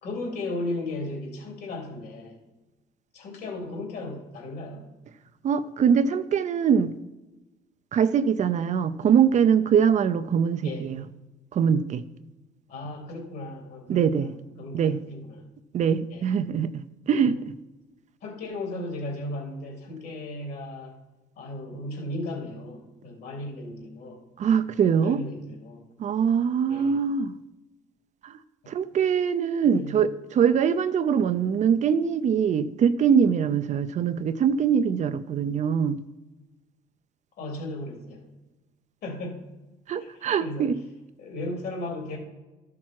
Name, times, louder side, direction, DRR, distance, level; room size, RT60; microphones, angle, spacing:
voice 1, 0.0-2.4 3.1-4.9 10.6-10.9 12.7-14.3 14.6-15.4 16.1-16.3 17.2-17.4 18.2-21.0 21.4-24.2 25.0-25.8 26.7-27.0 29.6-29.9 37.4-38.2 39.0-39.4 40.0-40.7 41.2-42.2, left 2 dB, 70° left, 0 dB, 3.3 m, -35 dB
voice 2, 5.4-6.9 7.9-11.0 11.5-12.0 13.9-14.3 14.7-15.0 15.7-17.5 24.4-25.2 26.0-27.3 28.2-28.3 28.7-36.0 39.9-40.7, right 7 dB, 45° right, 12 dB, 0.5 m, -23 dB
13.0 x 5.9 x 4.6 m, 1.1 s
cardioid pair, 110°, 17 cm